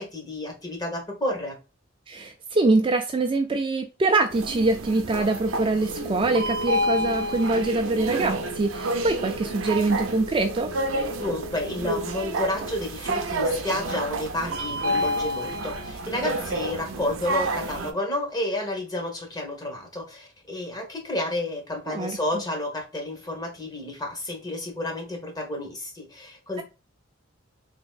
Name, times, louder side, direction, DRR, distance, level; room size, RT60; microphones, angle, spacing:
voice 1, 0.0-1.6 11.2-26.6, left 1 dB, 20° left, 0.9 m, -31 dB
voice 2, 2.1-10.7 21.9-22.2, right 2 dB, 25° right, 0.3 m, -24 dB
sound 1, 4.3-17.9, right 1 dB, 80° right, 0.5 m, -29 dB
Wind instrument woodwind instrument, 5.8-12.9, right 1 dB, 65° left, 0.4 m, -38 dB
3.4 x 3.0 x 2.4 m
head